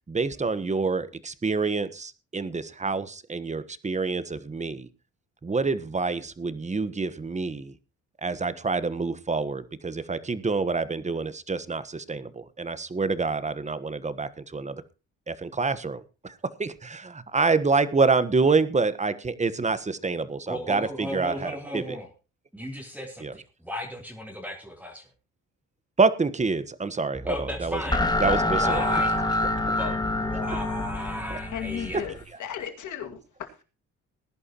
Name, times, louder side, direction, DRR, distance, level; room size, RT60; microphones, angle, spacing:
voice 1, 0.1-4.9 5.4-7.7 8.2-14.8 15.3-16.3 16.6-20.9 21.1-21.8 23.2-23.3 26.0-27.3 27.6-27.8 28.2-28.8, right 4 dB, 25° right, 13 dB, 1.3 m, -27 dB
voice 2, 20.4-22.1 22.5-25.1 27.3-29.2 29.8-32.1, left 1 dB, 5° right, 0 dB, 3.2 m, -35 dB
sound 1, 27.2-32.2, left 2 dB, 15° left, 2.0 m, -27 dB
voice 3, 31.5-32.1 32.4-33.6, left 9 dB, 75° left, 6 dB, 2.3 m, -35 dB
19.5 x 11.0 x 3.0 m, 0.32 s
cardioid pair, 90°, 30 cm